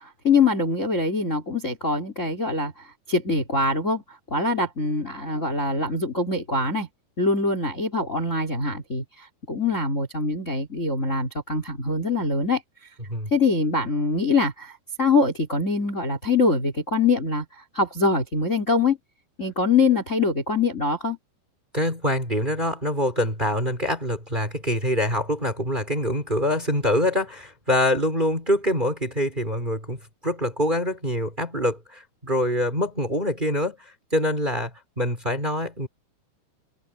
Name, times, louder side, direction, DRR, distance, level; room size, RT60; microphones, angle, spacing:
voice 1, 0.0-6.9 7.2-12.6 13.3-19.0 19.4-21.2, left 3 dB, 20° left, 3.5 m, -24 dB
voice 2, 21.7-33.8 34.1-34.7 35.0-35.9, left 1 dB, 10° right, 4.2 m, -25 dB
omnidirectional pair, 5.2 m